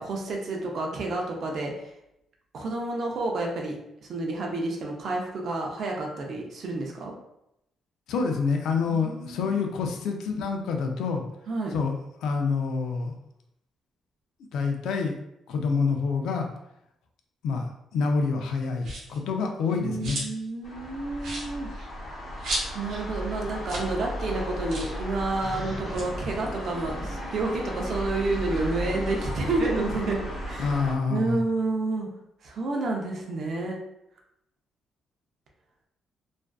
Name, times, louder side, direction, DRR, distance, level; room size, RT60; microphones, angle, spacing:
voice 1, 0.0-1.7 2.5-3.8 4.1-7.1 8.9-9.6 11.5-11.7 19.3-21.7 22.7-30.8 31.1-32.1 32.4-33.8, right 2 dB, 55° right, 0 dB, 0.5 m, -30 dB
voice 2, 8.1-11.2 11.7-13.1 14.5-15.2 15.5-16.5 17.4-17.7 17.9-20.2 30.6-31.4, left 5 dB, 85° left, 3 dB, 0.4 m, -27 dB
sound 1, 18.8-19.2 19.6-20.5 20.8-20.9 21.2-23.0 23.3-23.4 23.6-23.9 24.2-24.3 24.7-25.0 25.7-27.5 27.9-29.4, right 1 dB, 85° right, 0.8 m, -36 dB
sound 2, 20.6-30.9, equal, 50° left, 0.9 m, -35 dB
sound 3, 22.7-29.2, left 1 dB, 15° left, 0.6 m, -43 dB
2.5 x 2.3 x 2.2 m, 0.83 s
cardioid pair, 140°, 0 cm